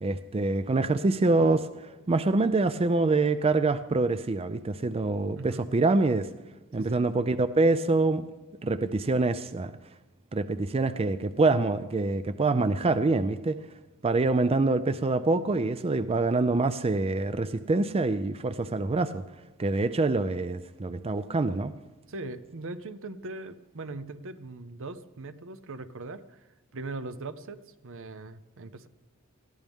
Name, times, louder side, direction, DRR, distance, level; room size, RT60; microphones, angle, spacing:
voice 1, 0.0-6.3 6.7-8.3 8.6-9.7 10.3-13.6 14.0-19.2 19.6-21.7, right 3 dB, 25° right, 12 dB, 0.4 m, -25 dB
voice 2, 6.8-7.1 22.1-26.4 26.7-28.9, right 2 dB, 65° right, 12 dB, 0.8 m, -40 dB
21.0 x 15.0 x 3.6 m, 1.1 s
head